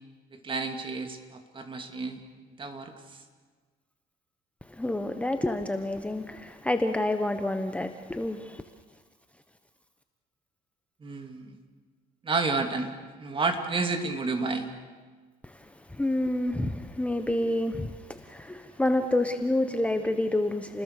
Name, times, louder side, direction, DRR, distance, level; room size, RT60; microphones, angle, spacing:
voice 1, 0.3-2.2 2.6-2.9 11.0-11.6 12.2-12.9 13.2-14.7, right 3 dB, 30° right, 2.8 m, -30 dB
voice 2, 4.7-8.6 15.4-20.8, left 1 dB, 10° left, 1.1 m, -28 dB
30.0 x 20.5 x 6.7 m
cardioid pair, 110°, 17 cm